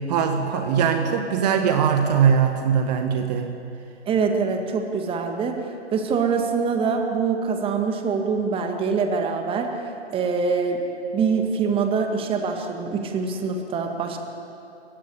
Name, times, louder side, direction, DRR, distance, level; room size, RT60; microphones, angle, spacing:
voice 1, 0.0-3.5, right 7 dB, 35° right, 5 dB, 1.7 m, -21 dB
voice 2, 4.1-5.6 5.9-10.8 11.1-14.2, right 5 dB, 15° right, 4 dB, 2.0 m, -24 dB
29.5 x 16.0 x 8.7 m, 2.8 s
figure-of-eight pair, 115°, 35 cm